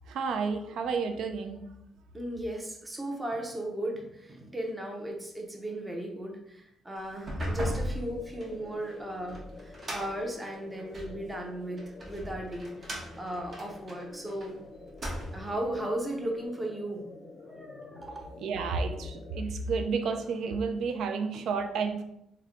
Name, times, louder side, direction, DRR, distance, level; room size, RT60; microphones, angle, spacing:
voice 1, 0.1-1.7 18.4-22.0, right 5 dB, 75° right, 7 dB, 0.4 m, -31 dB
voice 2, 2.1-14.6 15.3-17.0 17.4-18.3, right 1 dB, 15° right, 1 dB, 0.7 m, -36 dB
sound 1, 7.1-11.2 11.8-14.5 14.8-15.6, equal, 40° right, 1.0 m, -37 dB
sound 2, 8.1-19.4, left 3 dB, 55° left, 0.4 m, -49 dB
3.3 x 2.2 x 3.5 m, 0.80 s
cardioid pair, 90°, 0 cm